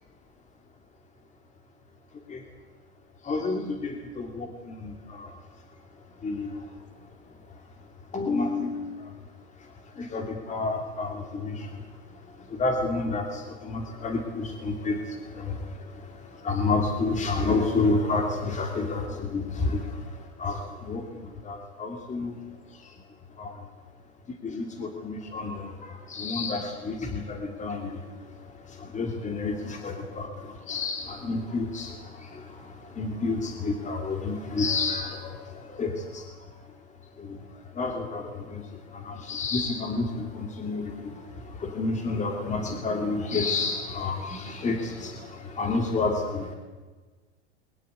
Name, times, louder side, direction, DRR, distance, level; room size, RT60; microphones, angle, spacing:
voice 1, 3.2-5.3 6.2-6.6 8.1-9.1 10.0-11.7 12.5-15.7 15.9-20.0 20.4-22.3 23.4-23.5 24.4-28.0 28.7-36.2 37.2-37.4 37.7-46.5, left 3 dB, 20° left, 4 dB, 2.8 m, -30 dB
22.0 x 20.0 x 8.1 m, 1.3 s
hypercardioid pair, 120°, 34 cm